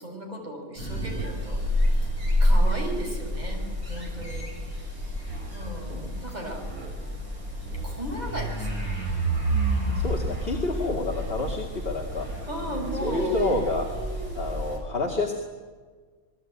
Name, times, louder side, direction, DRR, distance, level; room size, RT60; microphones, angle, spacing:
voice 1, 0.0-2.1 2.4-3.6 3.9-4.5 5.5-6.6 7.8-9.0 12.5-13.4, equal, 30° right, 1 dB, 6.5 m, -36 dB
sound 1, 0.8-14.8, equal, 80° right, 7.8 m, -28 dB
voice 2, 10.0-12.3 12.6-12.7 13.0-14.0 14.3-15.3, left 2 dB, 40° left, 1 dB, 2.6 m, -29 dB
28.5 x 20.5 x 9.3 m, 1.5 s
omnidirectional pair, 1.5 m